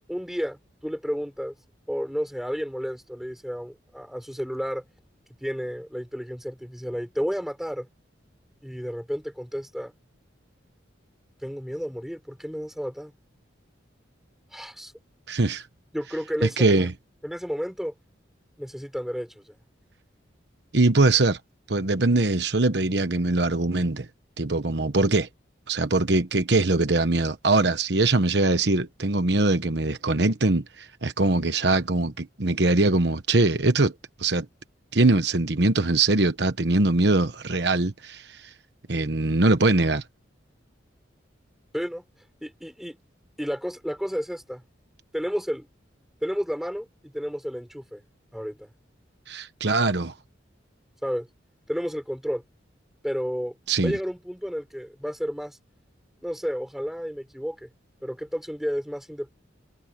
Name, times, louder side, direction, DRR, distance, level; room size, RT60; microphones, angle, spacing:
voice 1, 0.1-1.5 1.9-4.8 5.4-7.9 8.6-9.9 11.4-13.1 14.5-14.9 15.9-16.9 17.2-17.9 18.6-19.6 41.7-42.0 42.4-43.0 43.4-44.6 45.1-45.7 46.2-48.0 48.3-48.7 51.0-51.3 51.7-52.4 53.0-55.6 56.2-57.7 58.0-59.3, equal, ahead, 5.9 m, -31 dB
voice 2, 15.3-15.7 16.6-16.9 20.7-21.4 21.7-24.1 24.4-25.3 25.7-33.9 34.2-34.5 34.9-38.4 38.9-40.0 49.3-50.1 53.7-53.9, right 2 dB, 60° right, 1.2 m, -22 dB
head